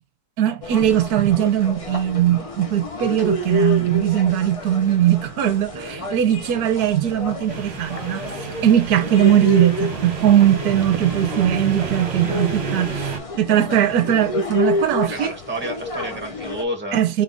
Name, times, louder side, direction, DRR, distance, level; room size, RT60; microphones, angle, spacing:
voice 1, 0.4-8.2 8.6-13.1 13.4-15.3 16.9-17.2, right 11 dB, 65° right, 1.1 m, -19 dB
sound 1, 0.6-16.6, left 2 dB, 30° left, 0.6 m, -29 dB
voice 2, 5.7-6.1 15.0-17.0, equal, 5° right, 1.6 m, -30 dB
sound 2, 7.5-13.2, right 5 dB, 40° right, 1.4 m, -30 dB
3.8 x 3.5 x 3.8 m
omnidirectional pair, 1.9 m